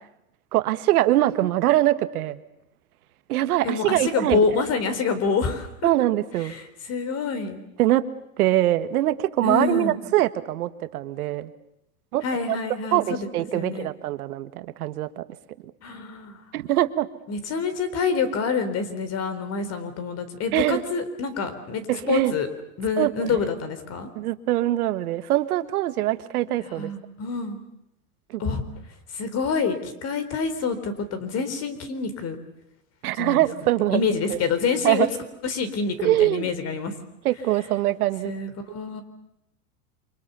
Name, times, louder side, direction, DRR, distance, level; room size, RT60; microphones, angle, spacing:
voice 1, 0.5-2.4 3.3-4.4 5.8-6.5 7.8-8.0 8.4-11.5 12.1-12.6 12.9-15.2 16.5-17.1 20.5-20.8 21.9-22.3 23.0-23.1 24.1-26.9 28.3-28.4 33.0-34.0 34.3-34.4 34.8-35.1 36.0-36.5 37.2-38.3, right 14 dB, 80° right, 11 dB, 1.8 m, -23 dB
voice 2, 3.6-5.9 6.4-7.6 9.4-10.0 12.2-13.9 15.8-16.4 17.3-22.5 22.8-24.1 26.6-27.6 28.4-28.6 29.1-32.4 33.1-33.4 33.9-35.1 35.4-36.9 38.2-39.0, left 5 dB, 35° left, 11 dB, 4.0 m, -27 dB
28.5 x 25.0 x 7.0 m, 0.81 s
supercardioid pair, 130°, 44 cm